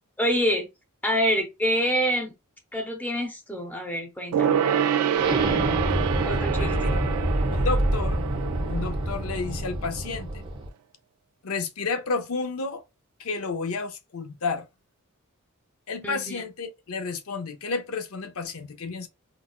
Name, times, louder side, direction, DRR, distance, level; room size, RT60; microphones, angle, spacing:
voice 1, 0.2-0.7 1.0-2.3 2.7-4.6 6.3-6.9 16.0-16.4, equal, 10° left, 0.7 m, -26 dB
Gong, 4.3-10.2 10.5-10.6, right 8 dB, 90° right, 0.3 m, -27 dB
Explosion, 5.2-10.7, right 1 dB, 25° right, 0.8 m, -27 dB
voice 2, 6.6-7.0 7.5-8.2 8.7-10.4 11.4-12.8 13.2-14.7 15.9-19.1, left 4 dB, 70° left, 0.7 m, -31 dB
3.9 x 2.3 x 2.3 m
head